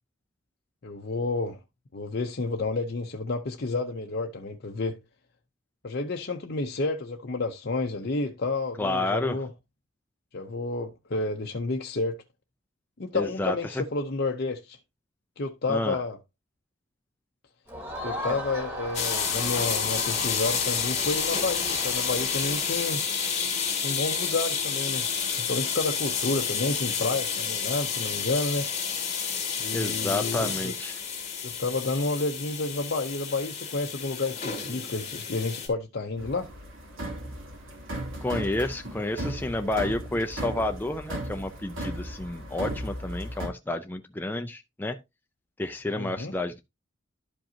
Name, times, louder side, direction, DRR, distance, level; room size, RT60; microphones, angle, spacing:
voice 1, 0.8-1.6 1.9-5.0 5.8-9.5 10.3-12.2 13.0-14.8 15.4-16.2 18.0-23.0 23.8-28.7 29.6-30.7 31.4-36.5 46.0-46.3, left 3 dB, 50° left, 0.6 m, -30 dB
voice 2, 8.8-9.4 13.1-13.8 15.7-16.0 29.7-31.0 38.2-45.0 45.6-46.6, left 2 dB, 10° left, 0.4 m, -30 dB
Crowd, 17.7-23.0, equal, 10° right, 2.9 m, -38 dB
sound 1, 18.9-35.7, left 6 dB, 35° left, 2.5 m, -30 dB
sound 2, 36.2-43.5, right 1 dB, 70° right, 2.8 m, -36 dB
11.5 x 5.3 x 2.8 m
head